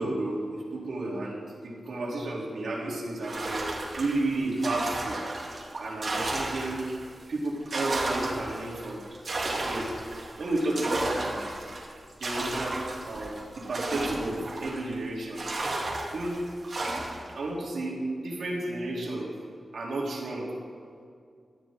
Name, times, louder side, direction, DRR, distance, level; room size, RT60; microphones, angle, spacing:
voice 1, 0.0-3.7 4.0-5.2 5.8-6.8 7.3-9.0 9.6-9.9 10.4-11.5 12.2-15.5 16.1-16.4 17.3-19.3 19.7-20.6, right 2 dB, 75° right, -3 dB, 3.3 m, -32 dB
sound 1, 3.2-7.1 7.4-15.0 15.4-17.3, right 2 dB, 50° right, 2.5 m, -33 dB
18.5 x 13.0 x 3.8 m, 2.3 s
wide cardioid pair, 145°, 0 cm